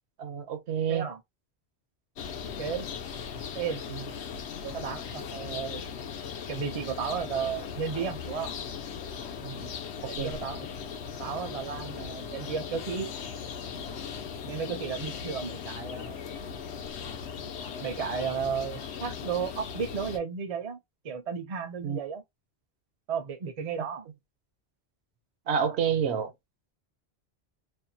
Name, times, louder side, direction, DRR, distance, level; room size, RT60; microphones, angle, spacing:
voice 1, 0.2-1.1 4.6-4.7 9.4-9.7 10.0-10.3 21.8-22.0 25.5-26.3, right 7 dB, 80° right, 0.9 m, -29 dB
voice 2, 0.9-1.2 2.6-2.9 3.5-3.8 4.7-5.8 6.5-8.5 10.1-10.7 11.2-13.1 14.4-16.2 17.8-20.8 21.0-22.2 23.1-24.1, right 7 dB, 45° right, 0.5 m, -33 dB
Alanis - Calle Bancos, 2.2-20.2, left 7 dB, 80° left, 0.9 m, -38 dB
2.6 x 2.1 x 2.6 m
omnidirectional pair, 1.1 m